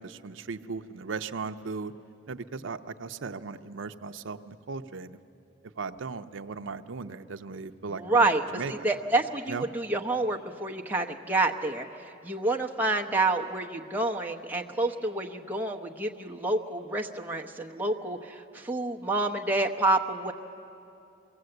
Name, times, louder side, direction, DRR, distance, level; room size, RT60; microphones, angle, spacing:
voice 1, 0.0-1.9 2.3-5.2 5.8-8.3 8.5-8.7 9.5-9.6, right 4 dB, 75° right, 8 dB, 0.6 m, -37 dB
voice 2, 7.9-20.3, right 2 dB, 10° right, 1 dB, 0.9 m, -28 dB
23.0 x 17.0 x 7.9 m, 2.8 s
head